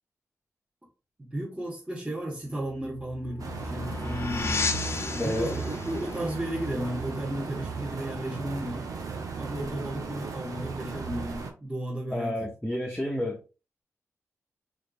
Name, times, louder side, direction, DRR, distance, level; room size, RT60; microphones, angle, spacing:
voice 1, 1.2-4.5 5.1-8.9 9.3-12.3, right 1 dB, 20° right, 1.4 m, -34 dB
sound 1, 2.7-8.0, left 4 dB, 50° left, 0.6 m, -34 dB
sound 2, 3.4-11.5, right 5 dB, 75° right, 0.8 m, -36 dB
voice 2, 5.2-5.6 12.1-13.4, left 1 dB, 10° left, 0.9 m, -30 dB
3.9 x 3.3 x 2.4 m
cardioid pair, 55°, 6 cm